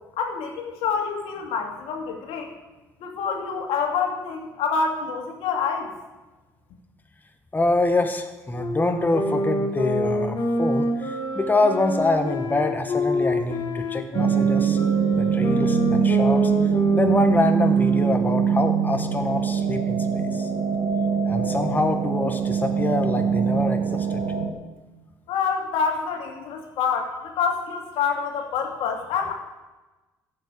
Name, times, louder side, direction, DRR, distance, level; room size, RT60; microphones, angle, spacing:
voice 1, 0.2-2.5 3.0-5.9 25.3-29.3, left 6 dB, 70° left, 2 dB, 2.2 m, -27 dB
voice 2, 7.5-14.8 15.2-16.5 16.9-20.5 21.3-24.2, left 2 dB, 20° left, 5 dB, 1.5 m, -25 dB
sound 1, 8.5-18.6, left 1 dB, 50° left, 3.6 m, -27 dB
sound 2, 14.1-24.5, right 7 dB, 60° right, 1.7 m, -23 dB
12.0 x 7.6 x 8.5 m, 1.1 s
hypercardioid pair, 60°, 10 cm